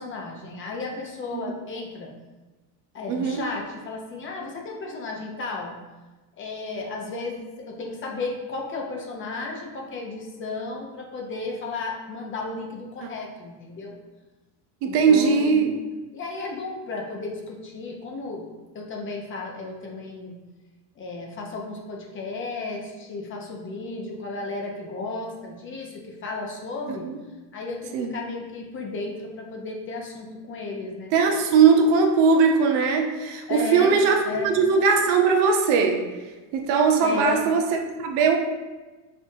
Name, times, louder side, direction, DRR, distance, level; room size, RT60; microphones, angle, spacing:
voice 1, 0.0-2.1 2.9-5.7 6.4-14.0 14.8-15.6 16.1-18.5 18.7-20.4 21.0-27.1 27.5-31.1 33.5-34.0 34.2-34.6 37.0-37.5, left 3 dB, 25° left, 0 dB, 0.5 m, -33 dB
voice 2, 3.1-3.4 14.8-15.8 26.9-27.2 27.9-28.1 31.1-36.0 36.5-38.4, right 5 dB, 70° right, 4 dB, 0.7 m, -20 dB
5.3 x 2.5 x 2.6 m, 1.2 s
supercardioid pair, 125°, 47 cm